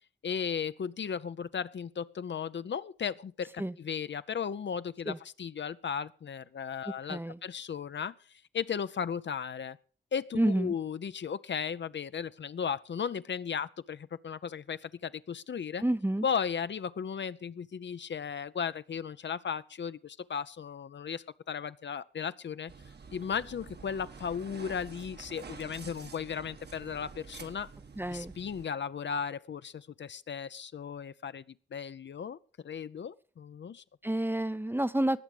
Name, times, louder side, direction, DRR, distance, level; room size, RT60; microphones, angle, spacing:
voice 1, 0.2-8.2 8.5-9.8 10.1-15.8 16.2-22.7 23.1-27.7 28.1-31.4 31.7-32.4 32.6-33.8, left 7 dB, 65° left, 14 dB, 0.5 m, -36 dB
voice 2, 10.3-10.7 15.8-16.2 28.0-28.3 34.0-35.2, right 1 dB, 10° right, 15 dB, 0.5 m, -29 dB
sound 1, 22.7-28.7, right 5 dB, 55° right, 1.2 m, -48 dB
19.5 x 7.3 x 4.9 m, 0.40 s
wide cardioid pair, 90°, 20 cm